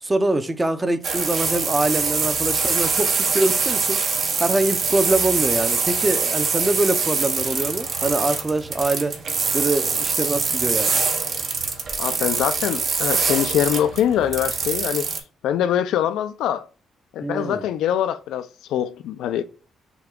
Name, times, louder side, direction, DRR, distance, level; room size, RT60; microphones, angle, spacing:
voice 1, 0.0-4.0 4.4-9.2 9.5-11.0 17.2-17.6, right 2 dB, 20° right, 0.6 m, -24 dB
sound 1, 1.0-15.2, right 4 dB, 55° right, 1.1 m, -24 dB
voice 2, 12.0-15.1 15.4-16.7 17.1-19.4, left 10 dB, 85° left, 0.4 m, -23 dB
5.9 x 2.3 x 3.7 m
cardioid pair, 90°, 0 cm